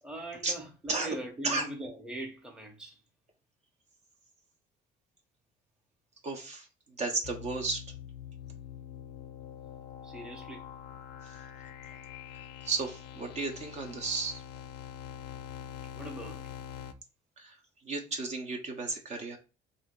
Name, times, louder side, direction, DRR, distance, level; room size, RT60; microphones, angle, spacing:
voice 1, 0.0-3.0 10.0-10.7 15.9-16.5, right 1 dB, 5° right, 0.9 m, -41 dB
voice 2, 6.2-7.8 11.2-11.4 12.3-14.4 17.4-19.4, right 3 dB, 40° right, 0.9 m, -34 dB
sound 1, 7.2-16.9, left 10 dB, 85° left, 0.4 m, -45 dB
3.3 x 2.7 x 3.7 m
cardioid pair, 110°, 17 cm